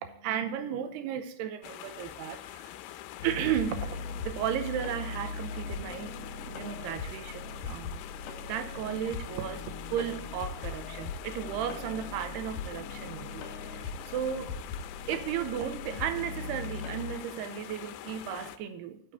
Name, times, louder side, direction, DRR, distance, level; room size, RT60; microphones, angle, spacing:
voice 1, 0.0-2.7 3.2-8.0 8.4-14.5 15.1-19.0, right 9 dB, 80° right, 9 dB, 2.6 m, -35 dB
sound 1, 1.6-18.6, left 13 dB, 85° left, 3.0 m, -45 dB
sound 2, 3.2-17.2, left 4 dB, 60° left, 2.7 m, -40 dB
9.2 x 7.0 x 7.9 m, 0.68 s
omnidirectional pair, 5.2 m